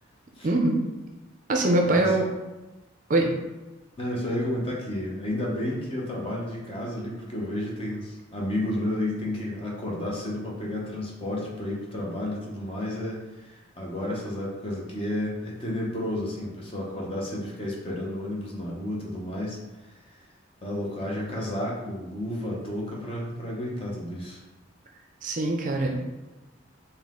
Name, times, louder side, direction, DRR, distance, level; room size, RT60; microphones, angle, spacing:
voice 1, 0.4-0.8 1.5-2.3 3.1-3.3 25.2-26.0, right 2 dB, 40° right, 2 dB, 0.4 m, -23 dB
voice 2, 1.9-2.2 4.0-19.6 19.9-20.2 20.6-24.4, left 1 dB, 30° left, -3 dB, 0.8 m, -31 dB
4.0 x 2.7 x 3.6 m, 1.1 s
head